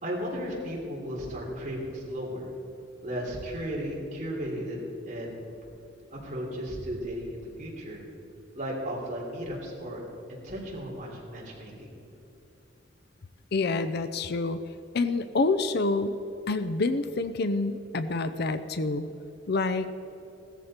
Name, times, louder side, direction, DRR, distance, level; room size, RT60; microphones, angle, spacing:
voice 1, 0.0-2.5 3.0-5.3 6.1-8.0 8.5-10.0 10.3-11.9, equal, 40° right, -3 dB, 3.5 m, -35 dB
voice 2, 13.5-14.6 14.9-16.2 16.5-19.1 19.5-19.9, left 3 dB, 50° left, 11 dB, 0.6 m, -27 dB
16.5 x 14.0 x 4.4 m, 3.0 s
head